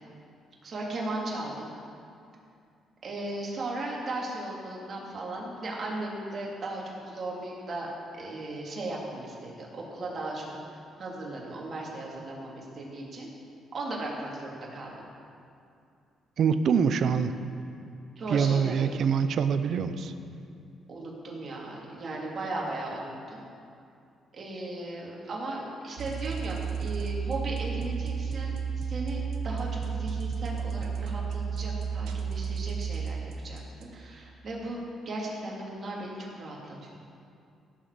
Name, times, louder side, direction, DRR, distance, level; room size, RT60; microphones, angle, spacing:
voice 1, 0.6-1.7 3.0-10.4 11.0-13.3 13.7-15.1 18.2-18.9 20.9-23.4 24.3-34.8 35.0-36.9, right 2 dB, 45° right, -3 dB, 3.0 m, -36 dB
voice 2, 16.4-17.3 18.3-20.1, right 6 dB, 65° right, 11 dB, 0.6 m, -25 dB
sound 1, 26.0-33.8, right 6 dB, 85° right, 1.0 m, -32 dB
17.0 x 7.3 x 5.0 m, 2.5 s
cardioid pair, 90°, 0 cm